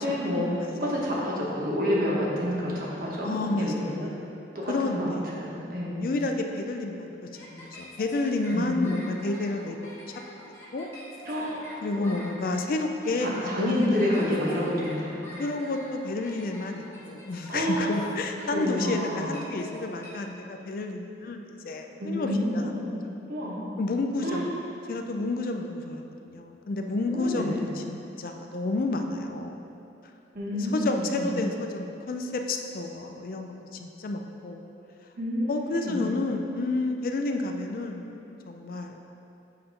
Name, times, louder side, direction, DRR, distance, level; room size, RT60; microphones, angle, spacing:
voice 1, 0.0-4.1 4.5-5.1 5.4-6.0 8.5-8.9 11.2-11.6 11.9-12.1 13.2-15.2 17.5-17.9 18.5-19.5 22.0-22.9 23.3-23.6 24.2-24.5 27.0-27.7 30.3-31.3 35.2-36.0, left 1 dB, 55° right, -5 dB, 1.2 m, -29 dB
voice 2, 3.2-3.9 4.7-5.2 6.0-7.1 7.4-10.1 10.7-10.9 11.8-13.9 15.4-22.3 22.5-22.7 23.8-24.5 24.9-27.6 27.9-29.6 30.7-34.6 35.5-39.0, left 2 dB, 55° left, 4 dB, 0.4 m, -30 dB
sound 1, 7.3-20.1, equal, 15° left, 0.9 m, -46 dB
7.5 x 2.9 x 5.2 m, 2.8 s
head